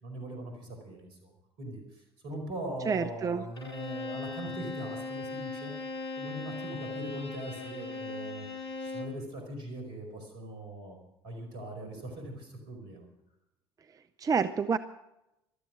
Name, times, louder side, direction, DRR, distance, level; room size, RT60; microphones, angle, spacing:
voice 1, 0.0-1.3 1.6-1.8 2.2-5.7 6.2-8.5 8.8-11.0 11.2-13.1, right 1 dB, 65° right, 3 dB, 4.9 m, -40 dB
voice 2, 2.9-3.4 14.2-14.8, right 6 dB, 25° right, 11 dB, 0.6 m, -28 dB
Bowed string instrument, 3.6-9.2, left 3 dB, 80° left, 1.5 m, -39 dB
15.0 x 13.0 x 6.3 m, 0.89 s
figure-of-eight pair, 55°, 13 cm